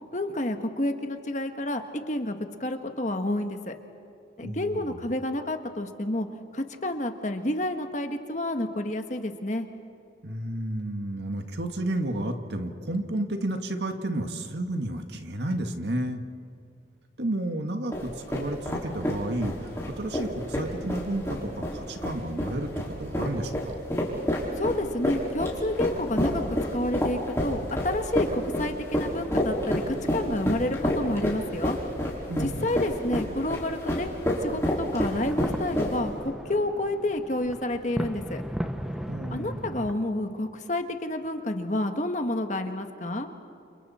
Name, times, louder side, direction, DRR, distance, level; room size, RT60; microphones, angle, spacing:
voice 1, 0.1-3.7 4.4-6.3 6.5-9.7 24.6-31.8 32.4-34.1 34.4-38.4 39.3-43.3, left 1 dB, 40° left, 6 dB, 1.5 m, -29 dB
voice 2, 4.4-5.0 10.2-16.2 17.2-19.5 19.9-23.8 32.3-32.7 39.1-39.8, right 1 dB, 70° right, 5 dB, 1.8 m, -31 dB
sound 1, 17.9-36.2, equal, 15° left, 4.8 m, -29 dB
sound 2, 35.0-39.9, equal, 5° right, 0.8 m, -36 dB
29.5 x 28.5 x 4.4 m, 2.5 s
head